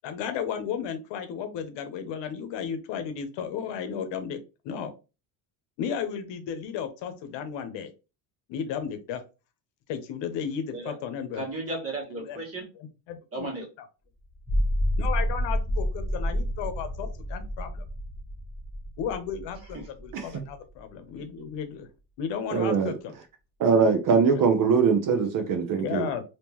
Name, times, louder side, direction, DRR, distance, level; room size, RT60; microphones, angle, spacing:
voice 1, 0.0-4.4 4.6-4.9 5.8-7.9 8.5-9.2 9.9-11.4 12.2-12.4 13.1-13.5 15.0-17.8 19.0-21.9 22.2-23.1 24.3-24.5 25.8-26.2, left 7 dB, 70° left, 0.9 m, -34 dB
voice 2, 11.3-12.7 13.3-13.7 19.7-19.9 21.2-21.3, right 2 dB, 30° right, 1.7 m, -35 dB
sound 1, 14.3-20.8, equal, 5° left, 1.2 m, -29 dB
voice 3, 22.5-22.9 23.6-26.1, right 5 dB, 45° right, 0.7 m, -22 dB
3.5 x 2.9 x 2.9 m
cardioid pair, 125°, 44 cm